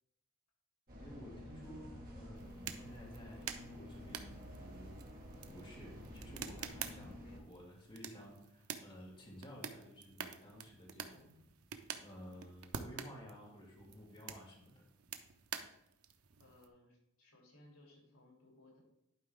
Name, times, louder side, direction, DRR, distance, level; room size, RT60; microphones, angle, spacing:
sound 1, 0.9-7.4, equal, 40° right, 1.9 m, -51 dB
voice 1, 1.0-1.9 2.1-5.0 5.5-11.5 12.0-14.8, equal, 25° left, -3 dB, 2.2 m, -54 dB
sound 2, 2.4-16.7, right 7 dB, 80° right, 0.7 m, -49 dB
voice 2, 6.7-7.5 16.4-18.8, left 2 dB, 70° left, -1 dB, 3.2 m, -63 dB
11.0 x 4.7 x 3.6 m, 0.85 s
head